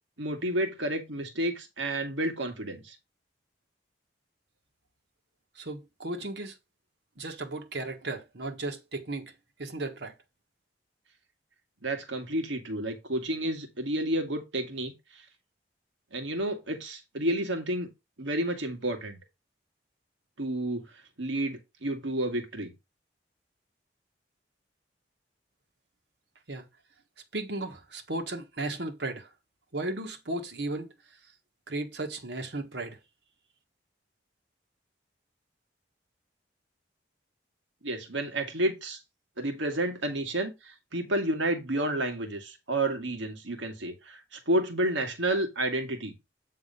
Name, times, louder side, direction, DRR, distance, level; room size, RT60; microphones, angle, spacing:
voice 1, 0.2-3.0 11.8-15.2 16.1-17.9 18.2-19.2 20.4-20.8 21.2-22.7 37.8-39.0 39.4-46.1, right 1 dB, 85° right, 2.0 m, -30 dB
voice 2, 5.5-6.5 7.2-9.3 9.6-10.1 26.5-26.6 27.3-29.3 29.7-30.9 31.7-33.0, right 2 dB, 65° right, 1.4 m, -35 dB
8.8 x 3.6 x 5.4 m
head